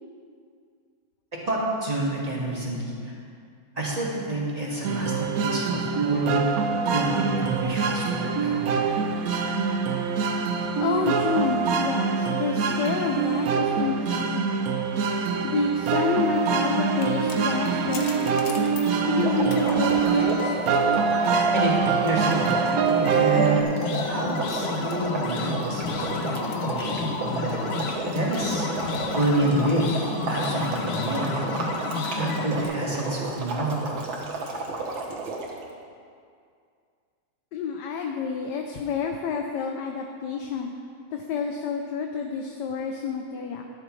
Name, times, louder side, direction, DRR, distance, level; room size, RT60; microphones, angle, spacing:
voice 1, 1.4-3.1 3.7-6.5 6.9-8.8 21.5-22.6 23.1-23.6 24.1-27.6 28.1-28.7 29.1-31.9 32.1-33.8, right 1 dB, 20° right, -5 dB, 1.7 m, -28 dB
sound 1, 4.8-23.6, right 5 dB, 65° right, 0.9 m, -24 dB
voice 2, 10.8-14.7 15.4-18.6 19.1-20.8 37.5-40.7 41.1-43.6, left 6 dB, 70° left, 3 dB, 1.2 m, -29 dB
sound 2, 16.4-32.6, left 4 dB, 85° left, 1.6 m, -32 dB
sound 3, 19.2-35.6, right 3 dB, 90° right, 2.0 m, -32 dB
12.5 x 10.5 x 3.2 m, 2.3 s
omnidirectional pair, 2.1 m